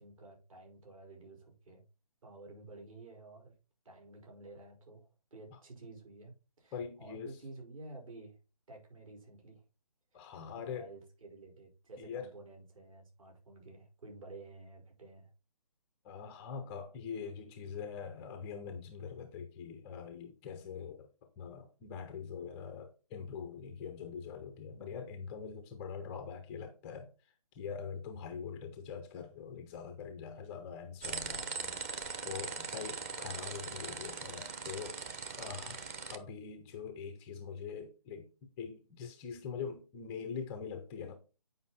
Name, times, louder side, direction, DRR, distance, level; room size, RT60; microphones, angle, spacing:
voice 1, 0.0-1.8 2.2-3.5 3.8-8.4 8.7-9.6 10.6-15.3 24.7-25.2 31.3-31.8 32.6-32.9, right 2 dB, 60° right, 5.1 m, -52 dB
voice 2, 6.7-7.4 10.1-10.9 12.0-12.3 16.0-21.1 21.4-27.1 27.5-31.5 32.2-35.0 35.4-35.8 36.1-41.2, left 6 dB, 5° left, 0.4 m, -43 dB
sound 1, 31.0-36.2, right 5 dB, 25° right, 0.7 m, -40 dB
9.4 x 5.3 x 4.1 m
figure-of-eight pair, 150°, 20 cm